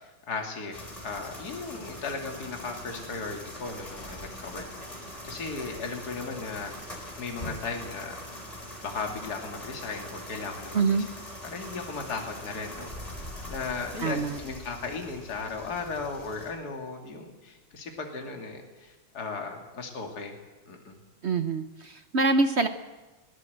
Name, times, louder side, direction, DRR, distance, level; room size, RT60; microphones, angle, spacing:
voice 1, 0.0-4.6 4.9-6.7 7.2-8.1 8.8-10.8 11.5-13.2 13.5-20.4 20.7-21.0, left 4 dB, 45° left, 2 dB, 2.9 m, -36 dB
sound 1, 0.7-16.5, left 1 dB, 15° left, 4.6 m, -42 dB
voice 2, 10.7-11.1 14.0-14.4 21.2-22.7, right 3 dB, 50° right, 9 dB, 0.8 m, -25 dB
20.0 x 18.0 x 7.9 m, 1.2 s
omnidirectional pair, 2.3 m